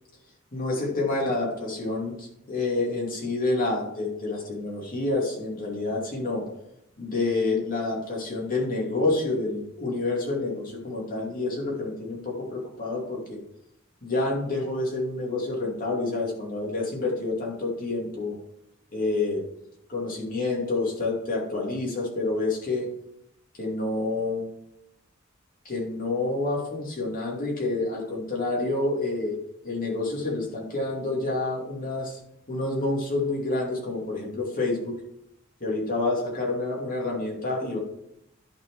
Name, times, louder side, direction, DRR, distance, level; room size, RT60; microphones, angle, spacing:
voice 1, 0.5-6.5 7.0-13.4 14.0-18.4 18.9-19.4 19.9-22.9 23.6-24.5 25.6-29.3 29.6-32.2 32.5-35.0 35.6-37.8, left 2 dB, 45° left, -2 dB, 2.6 m, -28 dB
11.0 x 4.6 x 4.7 m, 0.79 s
head